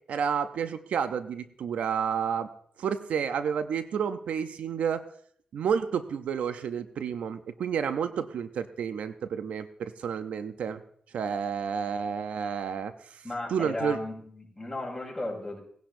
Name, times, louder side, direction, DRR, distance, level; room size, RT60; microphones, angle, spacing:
voice 1, 0.1-2.5 2.8-5.0 5.5-10.8 11.1-13.2 13.5-14.0, right 7 dB, 85° right, 0.6 m, -30 dB
voice 2, 13.2-15.6, left 2 dB, 10° left, 5.5 m, -35 dB
19.0 x 10.5 x 2.6 m
cardioid pair, 70°, 2 cm